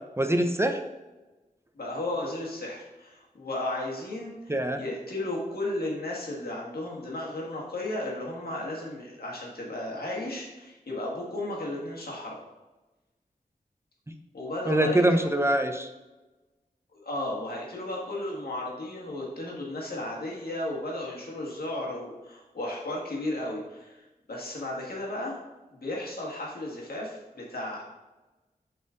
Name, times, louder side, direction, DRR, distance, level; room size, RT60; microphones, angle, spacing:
voice 1, 0.2-0.8 4.5-4.8 14.1-14.2 14.7-15.9, right 1 dB, 15° right, 6 dB, 0.6 m, -24 dB
voice 2, 1.8-12.4 14.3-15.3 16.9-25.4 25.7-27.8, left 1 dB, 80° left, -3 dB, 1.7 m, -34 dB
7.2 x 4.3 x 3.8 m, 1.1 s
wide cardioid pair, 70°, 16 cm